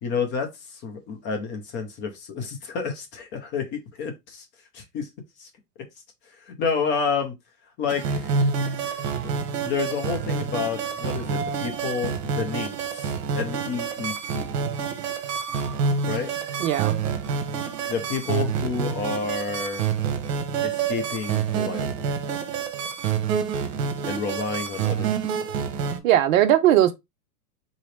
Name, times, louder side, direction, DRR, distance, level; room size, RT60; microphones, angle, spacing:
voice 1, 0.0-4.5 4.7-5.1 5.4-5.5 6.3-7.3 7.8-8.5 9.6-14.5 16.1-16.3 17.9-19.8 20.6-21.9 24.0-25.5, left 5 dB, 25° left, 0.6 m, -30 dB
sound 1, 7.9-26.0, right 6 dB, 75° right, 1.0 m, -27 dB
voice 2, 16.6-17.0 26.0-27.0, right 12 dB, 55° right, 0.7 m, -19 dB
3.9 x 3.0 x 3.2 m
supercardioid pair, 145°, 48 cm